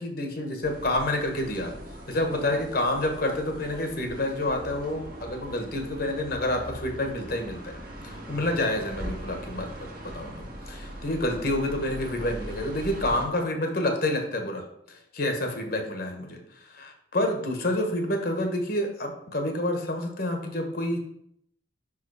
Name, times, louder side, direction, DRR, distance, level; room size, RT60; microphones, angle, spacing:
voice 1, 0.0-1.8 2.1-7.7 8.0-9.7 10.0-21.0, left 1 dB, 50° left, 4 dB, 1.1 m, -28 dB
sound 1, 0.6-13.3, equal, 50° right, 1.3 m, -40 dB
5.4 x 4.9 x 4.8 m, 0.71 s
head